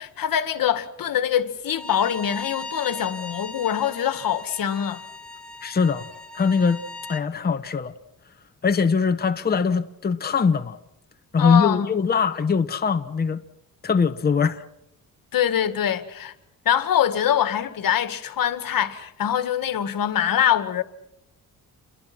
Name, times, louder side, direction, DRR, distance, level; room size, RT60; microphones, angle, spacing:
voice 1, 0.0-5.0 11.4-11.9 15.3-16.3 16.7-20.8, left 9 dB, 75° left, 1.9 m, -24 dB
Bowed string instrument, 1.7-7.2, left 3 dB, 5° left, 1.7 m, -38 dB
voice 2, 5.6-6.1 6.3-6.8 7.1-7.9 8.6-10.8 11.3-13.4 13.8-14.6, left 5 dB, 25° left, 0.9 m, -22 dB
29.0 x 23.0 x 6.0 m
cardioid pair, 125°, 35 cm